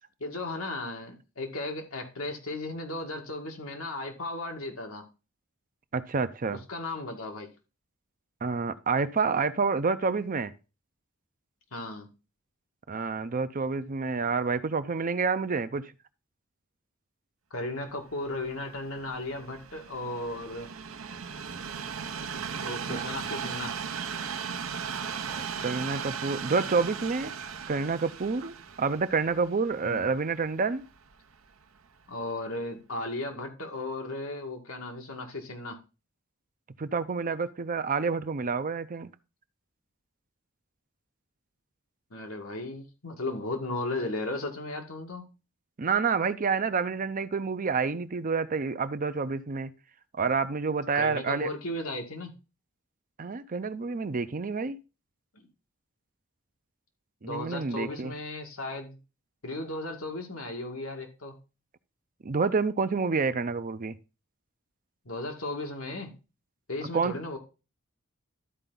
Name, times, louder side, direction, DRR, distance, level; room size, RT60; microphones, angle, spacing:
voice 1, 0.2-5.0 6.5-7.5 11.7-12.1 17.5-20.7 22.6-23.7 29.8-30.0 32.1-35.8 42.1-45.3 50.9-52.3 55.3-55.5 57.2-59.0 59.4-61.4 65.1-66.1 66.7-67.4, left 2 dB, 90° left, 2.0 m, -35 dB
voice 2, 5.9-6.6 8.4-10.5 12.9-15.9 22.9-23.0 25.3-27.3 27.7-30.8 36.8-39.1 45.8-49.7 50.1-51.5 53.2-54.8 57.2-58.1 62.2-64.0 66.9-67.1, right 4 dB, 40° right, 0.6 m, -28 dB
Train, 18.1-31.3 32.0-32.2, right 6 dB, 75° right, 0.8 m, -37 dB
12.5 x 4.6 x 3.9 m
head